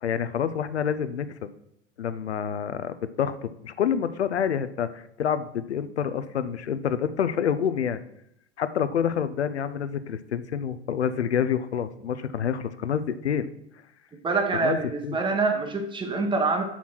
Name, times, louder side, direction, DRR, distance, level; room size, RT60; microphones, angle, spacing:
voice 1, 0.0-1.5 2.0-3.4 3.6-8.0 8.6-13.5 14.6-14.8 15.0-15.2, left 8 dB, 75° left, 12 dB, 0.5 m, -27 dB
voice 2, 14.2-16.6, right 3 dB, 15° right, 5 dB, 0.9 m, -25 dB
5.8 x 4.2 x 6.0 m, 0.78 s
figure-of-eight pair, 85°, 34 cm